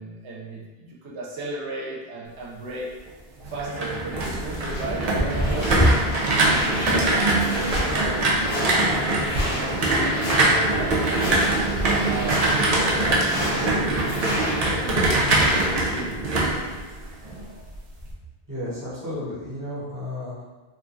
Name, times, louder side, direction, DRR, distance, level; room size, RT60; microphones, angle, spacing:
voice 1, 0.0-2.9 3.4-8.2 8.7-11.4 11.8-14.4 14.8-15.3 15.8-16.5, right 2 dB, 80° right, -5 dB, 0.9 m, -36 dB
sound 1, 3.4-17.4 17.7-18.1, right 2 dB, 50° right, 0.5 m, -23 dB
sound 2, 4.5-15.9, equal, 75° left, 1.1 m, -29 dB
voice 2, 18.5-20.4, left 1 dB, 20° right, -10 dB, 0.9 m, -33 dB
3.0 x 2.2 x 2.5 m, 1.2 s
omnidirectional pair, 1.1 m